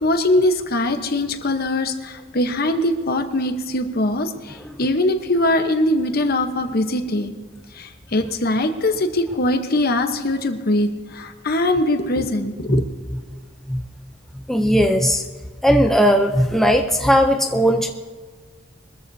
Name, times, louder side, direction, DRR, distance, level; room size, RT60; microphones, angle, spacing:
voice 1, 0.0-7.3 7.7-12.8, left 1 dB, 50° left, 7 dB, 1.0 m, -21 dB
voice 2, 14.5-15.2 15.6-17.9, equal, ahead, 4 dB, 0.5 m, -17 dB
22.5 x 14.0 x 2.7 m, 1.5 s
head